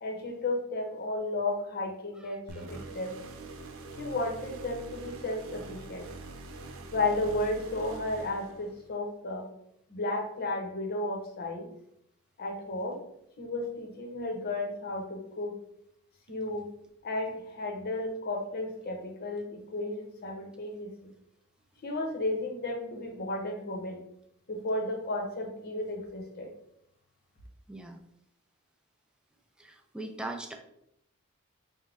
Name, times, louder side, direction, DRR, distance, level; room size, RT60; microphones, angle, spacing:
voice 1, 0.0-3.2 4.0-6.1 6.9-9.5 9.9-11.7 12.4-13.0 13.4-15.6 16.3-16.7 17.0-21.1 21.8-24.0 24.5-26.5, left 2 dB, 45° left, 1 dB, 0.8 m, -33 dB
sound 1, 2.5-8.9, right 3 dB, 65° right, 0.5 m, -44 dB
voice 2, 27.7-28.0 29.6-30.6, right 2 dB, 5° right, 3 dB, 0.4 m, -40 dB
5.1 x 2.1 x 3.3 m, 0.75 s
head